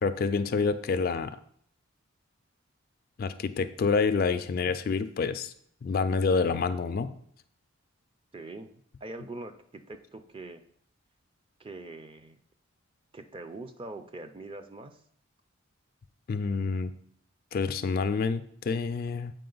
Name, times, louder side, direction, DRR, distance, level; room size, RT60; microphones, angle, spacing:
voice 1, 0.0-1.4 3.2-5.5 5.8-7.1 16.3-16.9 17.5-19.3, left 4 dB, 45° left, 10 dB, 0.3 m, -28 dB
voice 2, 8.3-8.7 9.0-10.6 11.6-12.4 13.1-15.0, right 2 dB, 25° right, 8 dB, 0.4 m, -43 dB
7.7 x 5.0 x 3.9 m, 0.64 s
head